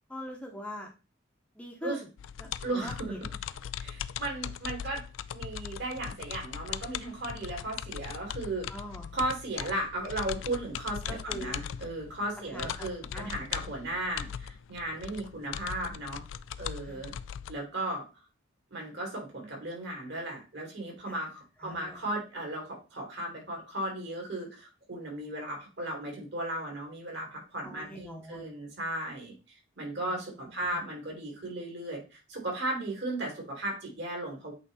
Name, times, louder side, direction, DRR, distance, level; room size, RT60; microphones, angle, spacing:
voice 1, 0.1-0.9 1.6-2.1 2.4-3.2 8.7-9.1 11.1-11.6 12.4-13.4 16.8-17.1 21.1-21.2 21.6-22.0 27.6-28.4 30.0-30.8, equal, 5° left, 1 dB, 0.8 m, -43 dB
sound 1, 2.2-17.6, left 9 dB, 75° left, 0.3 m, -40 dB
voice 2, 2.6-3.1 3.8-5.0 5.3-8.7 9.1-16.2 16.6-17.1 17.5-18.0 18.7-29.3 29.8-34.5, right 1 dB, 60° right, -1 dB, 3.2 m, -36 dB
8.3 x 3.2 x 4.0 m, 0.30 s
head